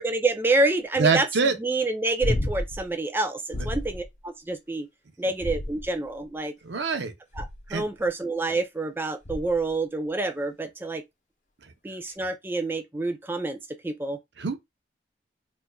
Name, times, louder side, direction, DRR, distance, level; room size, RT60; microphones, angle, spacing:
voice 1, 0.0-1.3 1.6-4.9 5.2-6.5 7.4-7.5 7.7-11.0 11.8-13.6 13.8-14.2, right 2 dB, 10° right, 0.4 m, -27 dB
voice 2, 1.0-1.6 3.5-3.7 6.6-7.1 7.7-7.8 14.4-14.6, right 4 dB, 75° right, 0.7 m, -24 dB
sound 1, 2.2-2.9 3.5-4.1 5.4-6.1 7.3-7.8 9.3-9.7 12.1-12.2, left 1 dB, 45° left, 0.8 m, -30 dB
4.3 x 2.5 x 2.3 m
head